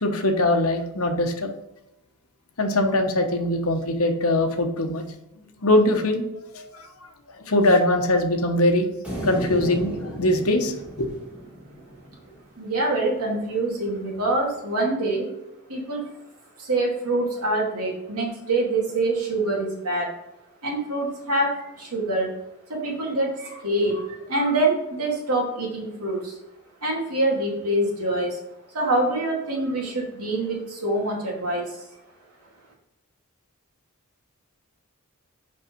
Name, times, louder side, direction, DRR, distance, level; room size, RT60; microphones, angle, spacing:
voice 1, 0.0-1.5 2.6-5.0 5.6-6.2 6.5-6.9 7.4-8.9 9.2-11.1, left 1 dB, 70° left, 4 dB, 1.1 m, -22 dB
sound 1, 9.0-12.4, right 1 dB, 5° right, 1.9 m, -34 dB
voice 2, 12.6-15.3 15.7-16.1 16.6-20.1 20.6-22.4 22.7-26.4 26.8-28.4 28.7-31.8, right 2 dB, 90° right, -2 dB, 2.4 m, -25 dB
6.5 x 5.3 x 4.4 m, 0.91 s
head